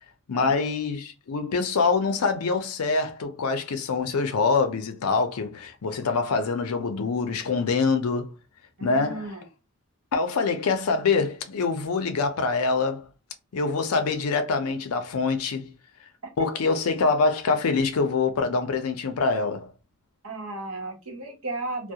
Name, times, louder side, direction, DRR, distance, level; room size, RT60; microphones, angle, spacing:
voice 1, 0.3-8.3 8.8-9.3 10.1-13.0 13.5-15.7 16.4-19.7, left 4 dB, 85° left, 0.5 m, -25 dB
voice 2, 8.8-9.4 20.2-21.9, right 2 dB, 75° right, 0.7 m, -34 dB
2.3 x 2.0 x 2.7 m
head